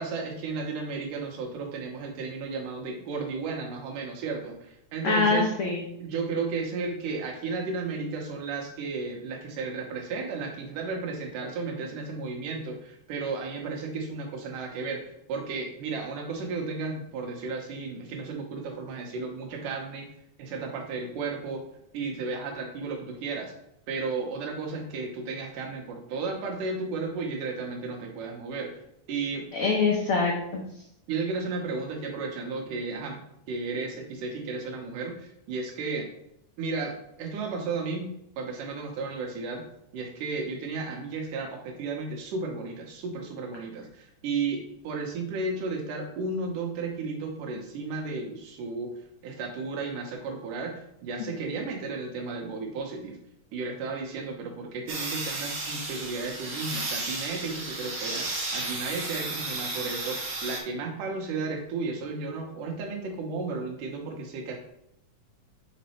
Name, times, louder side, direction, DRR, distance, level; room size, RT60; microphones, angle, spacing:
voice 1, 0.0-5.5 6.0-20.1 20.4-21.6 21.9-23.5 23.9-28.7 29.1-29.5 31.1-33.2 33.5-36.1 36.6-38.1 38.4-39.7 39.9-48.9 49.2-53.2 53.5-64.6, right 4 dB, 80° right, 2 dB, 2.7 m, -33 dB
voice 2, 5.0-5.8 29.5-30.6, left 4 dB, 80° left, -1 dB, 1.2 m, -24 dB
sound 1, 54.9-60.6, right 2 dB, 55° right, 1.3 m, -33 dB
5.9 x 4.2 x 4.4 m, 0.77 s
omnidirectional pair, 3.7 m